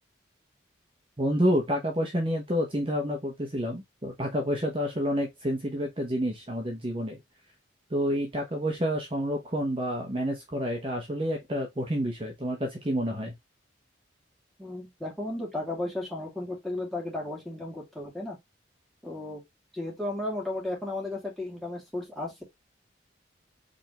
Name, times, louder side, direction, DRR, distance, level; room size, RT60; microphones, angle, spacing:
voice 1, 1.2-7.2 7.9-13.3, equal, 25° right, 0.9 m, -29 dB
voice 2, 14.6-18.4 19.0-19.4 19.7-22.4, left 2 dB, ahead, 2.2 m, -34 dB
5.1 x 3.4 x 3.0 m
head